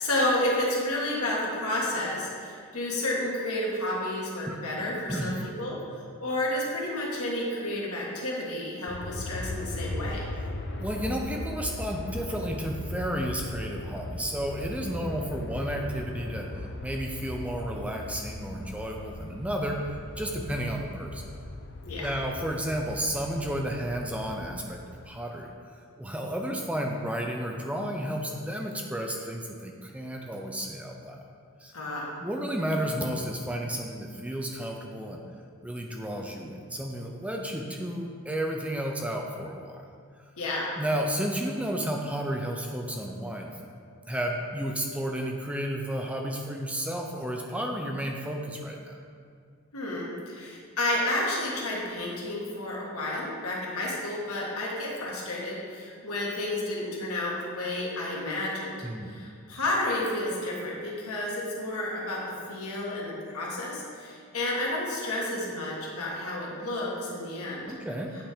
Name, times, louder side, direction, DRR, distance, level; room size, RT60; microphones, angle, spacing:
voice 1, 0.0-10.3 21.8-22.1 31.7-32.1 40.4-40.7 49.7-58.7 59.1-62.2 62.5-67.7, left 1 dB, 80° left, -3 dB, 1.5 m, -31 dB
voice 2, 5.1-5.4 10.8-21.2 22.0-25.5 26.0-31.2 31.6-31.7 32.2-35.2 35.6-39.8 40.8-43.5 44.1-48.9 58.8-59.1 67.7-68.2, right 1 dB, 5° right, 1 dB, 0.4 m, -32 dB
Aircraft, 8.9-25.1, left 2 dB, 50° left, 0.5 m, -38 dB
8.8 x 3.3 x 5.0 m, 2.2 s
head